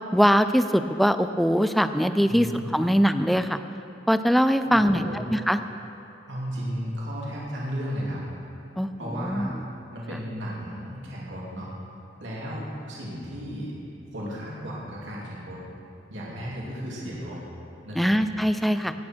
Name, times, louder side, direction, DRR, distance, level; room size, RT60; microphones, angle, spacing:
voice 1, 0.1-3.6 4.1-5.0 5.3-5.6 8.8-9.5 18.0-18.9, equal, ahead, 10 dB, 0.3 m, -22 dB
voice 2, 4.6-5.2 6.3-8.2 9.0-9.5 9.9-11.7 12.2-13.7 14.1-15.6 16.1-17.4 17.8-18.2, equal, 80° right, -6 dB, 2.7 m, -34 dB
17.0 x 8.4 x 4.5 m, 2.9 s
head